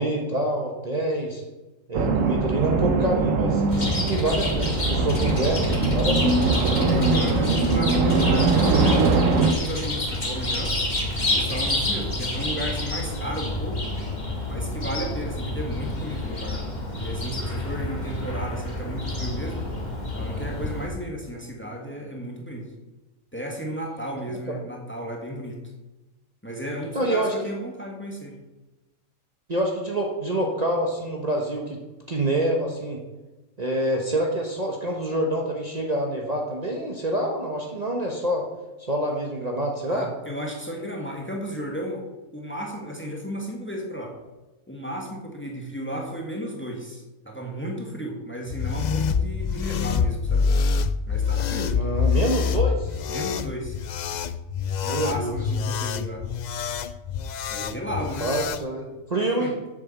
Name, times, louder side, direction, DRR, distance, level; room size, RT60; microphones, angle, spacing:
voice 1, 0.0-1.4 1.9-5.6 5.9-6.4 24.5-24.6 26.9-27.3 29.5-31.8 32.1-33.0 33.6-38.4 38.8-40.1 51.7-53.0 54.8-55.3 58.2-59.5, right 1 dB, 35° right, 0 dB, 1.3 m, -26 dB
sound 1, 1.9-9.5, right 3 dB, 80° right, 1.3 m, -22 dB
Chirp tweet, 3.7-20.9, left 1 dB, 35° left, 2.0 m, -29 dB
voice 2, 6.4-10.8 11.2-14.0 14.5-19.7 20.2-22.7 23.3-25.6 26.4-28.4 39.9-42.1 42.3-44.2 44.7-50.5 51.1-51.7 53.1-53.8 54.8-56.3 57.5-58.3 59.2-59.5, equal, 10° left, 1 dB, 1.6 m, -34 dB
sound 2, 48.5-58.6, left 6 dB, 80° left, 0.4 m, -26 dB
8.0 x 7.0 x 7.2 m, 1.1 s
omnidirectional pair, 1.3 m